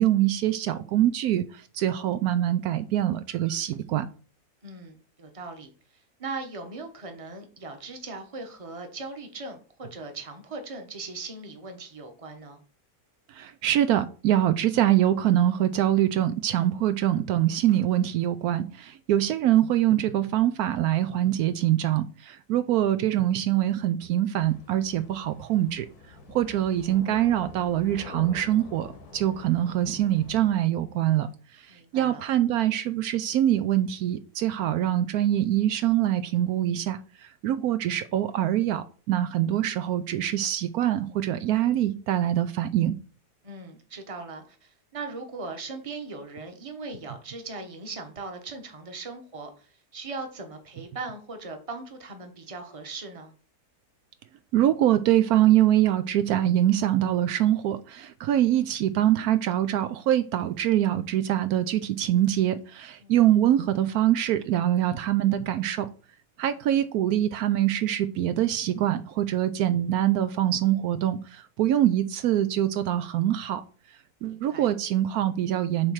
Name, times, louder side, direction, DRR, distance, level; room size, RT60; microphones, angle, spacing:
voice 1, 0.0-4.1 13.3-25.9 26.3-28.9 29.1-31.3 31.5-42.9 54.5-65.9 66.4-73.6 74.2-75.9, right 12 dB, 75° right, 1.0 m, -24 dB
voice 2, 4.6-5.7 6.2-12.6 31.7-32.2 43.4-53.3 63.0-63.1 74.3-74.7, right 3 dB, 25° right, 1.0 m, -39 dB
sound 1, 24.4-30.5, left 3 dB, 80° left, 1.8 m, -46 dB
7.4 x 3.2 x 6.2 m
omnidirectional pair, 1.6 m